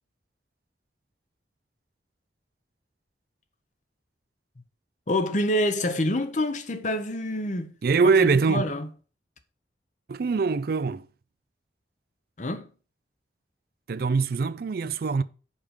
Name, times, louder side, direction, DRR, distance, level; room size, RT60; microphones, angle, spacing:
voice 1, 5.1-7.7 8.2-8.9 12.4-12.7, left 1 dB, 45° left, 0.9 m, -27 dB
voice 2, 7.8-8.6 10.1-11.1 13.9-15.2, right 4 dB, 55° right, 0.4 m, -23 dB
5.5 x 5.1 x 6.4 m
head